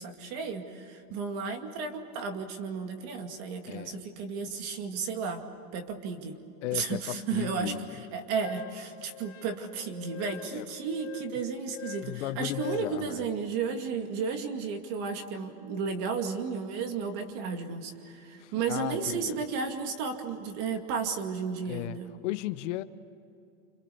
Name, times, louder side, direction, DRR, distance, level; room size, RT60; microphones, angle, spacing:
voice 1, 0.0-5.4 5.7-6.4 6.7-22.1, right 5 dB, 40° right, 6 dB, 2.4 m, -33 dB
voice 2, 3.7-4.0 6.6-8.0 10.5-10.7 12.0-13.3 18.4-19.4 21.6-22.0 22.2-22.8, left 15 dB, 55° left, 12 dB, 1.0 m, -35 dB
Wind instrument woodwind instrument, 8.4-13.0, left 14 dB, 35° left, 3.0 m, -44 dB
29.0 x 27.0 x 6.9 m, 2.7 s
supercardioid pair, 175°, 42 cm